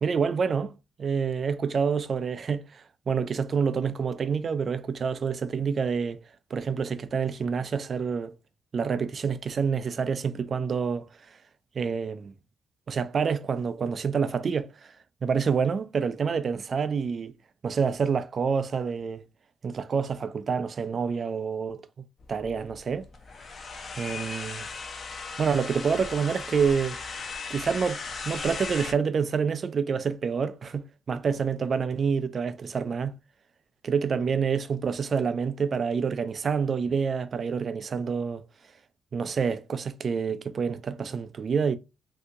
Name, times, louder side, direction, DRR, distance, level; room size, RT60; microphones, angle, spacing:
voice 1, 0.0-6.2 6.5-8.3 8.7-11.1 11.8-12.3 12.9-14.9 15.2-17.3 17.6-19.2 19.6-21.8 22.3-23.1 24.0-24.7 25.4-27.0 27.5-33.1 33.8-38.4 39.1-41.8, right 6 dB, 45° right, 0.4 m, -27 dB
sound 1, 22.2-28.9, left 4 dB, 45° left, 0.6 m, -37 dB
2.8 x 2.7 x 3.5 m
cardioid pair, 90°, 0 cm